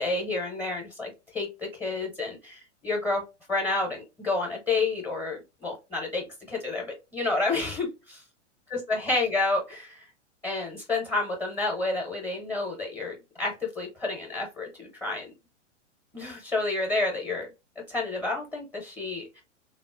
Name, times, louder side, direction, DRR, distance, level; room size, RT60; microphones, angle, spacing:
voice 1, 0.0-3.2 3.5-8.2 8.7-10.1 10.4-15.3 16.1-17.5 17.9-19.4, left 3 dB, 10° left, -1 dB, 0.6 m, -30 dB
3.8 x 2.0 x 2.4 m, 0.26 s
figure-of-eight pair, 100°, 37 cm